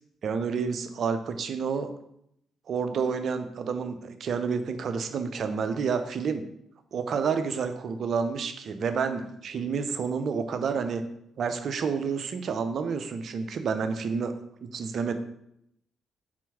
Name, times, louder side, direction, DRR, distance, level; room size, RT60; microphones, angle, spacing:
voice 1, 0.2-1.9 2.7-6.4 6.9-11.0 11.4-14.3 14.6-15.1, right 5 dB, 55° right, 8 dB, 0.6 m, -29 dB
4.5 x 4.3 x 5.7 m, 0.75 s
hypercardioid pair, 45°, 0 cm